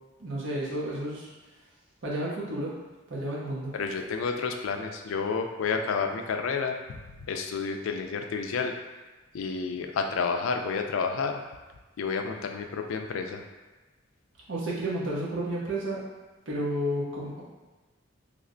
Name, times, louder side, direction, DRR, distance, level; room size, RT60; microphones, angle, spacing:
voice 1, 0.2-1.3 2.0-2.7 3.1-3.7 14.5-16.0 16.5-17.4, right 1 dB, 65° right, -6 dB, 0.9 m, -31 dB
voice 2, 3.7-6.8 7.3-8.7 9.3-11.4 12.0-13.4, left 5 dB, 85° left, 5 dB, 0.4 m, -30 dB
3.2 x 2.1 x 3.7 m, 1.2 s
head